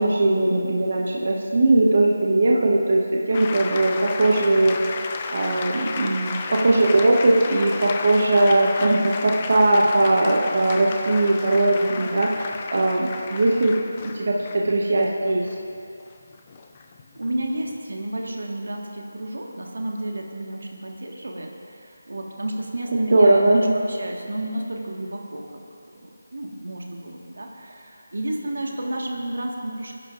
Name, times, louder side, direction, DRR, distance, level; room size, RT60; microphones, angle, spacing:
voice 1, 0.0-13.8 14.1-15.5 23.1-23.7, right 2 dB, 50° right, -2 dB, 1.1 m, -20 dB
sound 1, 3.3-17.8, left 4 dB, 20° left, 0.5 m, -33 dB
voice 2, 8.8-9.4 17.1-25.6 25.9-30.0, right 1 dB, 85° right, 0 dB, 1.7 m, -31 dB
27.0 x 10.5 x 2.6 m, 2.5 s
figure-of-eight pair, 175°, 0 cm